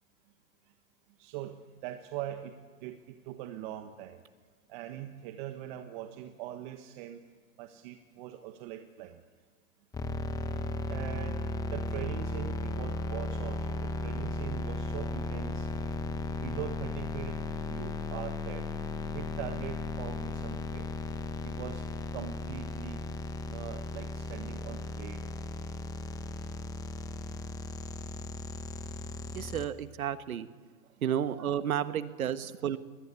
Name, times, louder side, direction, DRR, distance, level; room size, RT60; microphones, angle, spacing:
voice 1, 1.2-2.6 2.8-4.2 4.7-7.2 7.6-9.2 10.9-11.4 11.7-15.7 16.4-17.4 17.7-18.7 19.1-20.9 21.4-21.9 22.1-23.0 23.5-25.3, right 12 dB, 35° right, 7 dB, 1.4 m, -42 dB
sound 1, 9.9-29.7, left 2 dB, 10° left, 1.0 m, -36 dB
voice 2, 29.3-30.5 31.0-32.8, right 9 dB, 75° right, 12 dB, 1.5 m, -32 dB
23.0 x 20.0 x 8.4 m, 1.5 s
hypercardioid pair, 140°, 43 cm